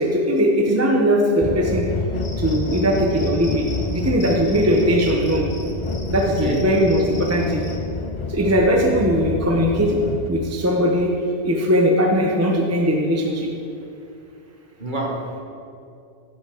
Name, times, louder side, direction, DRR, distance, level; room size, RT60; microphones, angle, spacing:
voice 1, 0.0-1.9 2.4-5.5 6.1-7.6 8.3-10.0 10.3-11.1 11.4-13.5, equal, 15° right, 0 dB, 0.8 m, -19 dB
sound 1, 1.4-10.3, left 3 dB, 40° left, 0.4 m, -28 dB
Cricket, 2.2-7.8, left 2 dB, 70° left, 1.6 m, -42 dB
voice 2, 6.2-6.7 14.8-15.4, right 1 dB, 45° right, -1 dB, 1.7 m, -27 dB
14.5 x 6.3 x 5.0 m, 2.5 s
omnidirectional pair, 1.2 m